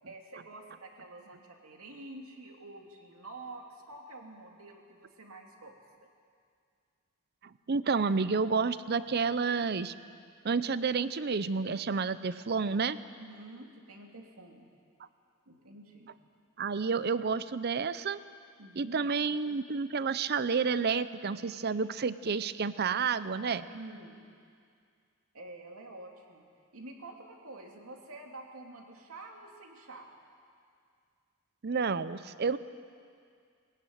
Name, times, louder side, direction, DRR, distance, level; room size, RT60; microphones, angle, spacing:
voice 1, 0.0-5.8 6.0-6.1 13.2-14.7 15.5-16.1 18.6-19.0 23.7-24.2 25.3-26.4 26.7-30.1, right 2 dB, 85° right, 2 dB, 2.6 m, -48 dB
voice 2, 7.7-9.9 10.4-13.0 16.6-18.2 18.8-23.7 31.6-32.6, right 5 dB, 50° right, 15 dB, 0.6 m, -30 dB
21.0 x 15.0 x 9.3 m, 2.3 s
head